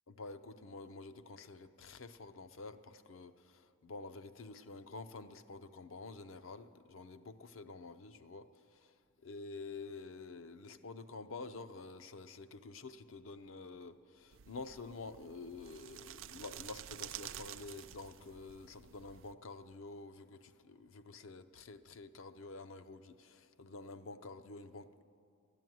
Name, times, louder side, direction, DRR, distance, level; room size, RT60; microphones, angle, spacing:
voice 1, 0.1-9.0 9.2-25.0, left 3 dB, 65° left, 0.6 m, -49 dB
sound 1, 14.3-19.3, right 11 dB, 65° right, 0.4 m, -50 dB
13.0 x 11.0 x 9.2 m
head